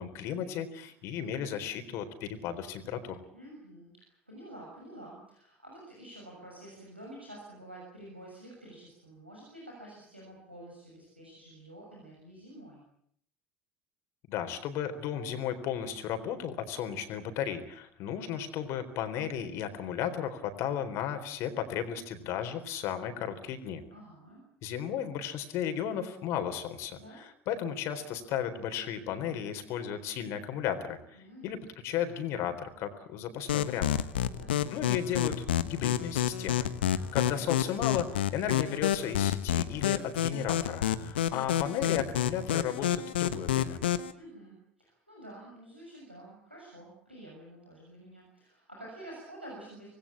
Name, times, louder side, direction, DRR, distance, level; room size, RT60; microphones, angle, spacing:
voice 1, 0.0-3.2 14.3-23.8 24.6-31.0 31.4-31.6 31.8-33.9 34.7-42.9 43.1-43.8, left 9 dB, 50° left, 8 dB, 3.9 m, -34 dB
voice 2, 3.3-12.8 23.9-24.4 27.0-27.2 31.1-31.5 34.2-34.6 44.1-49.9, right 1 dB, 90° right, -3 dB, 6.6 m, -49 dB
sound 1, 33.5-44.1, left 11 dB, 70° left, 1.2 m, -29 dB
26.0 x 20.0 x 8.8 m, 0.67 s
figure-of-eight pair, 65°, 6 cm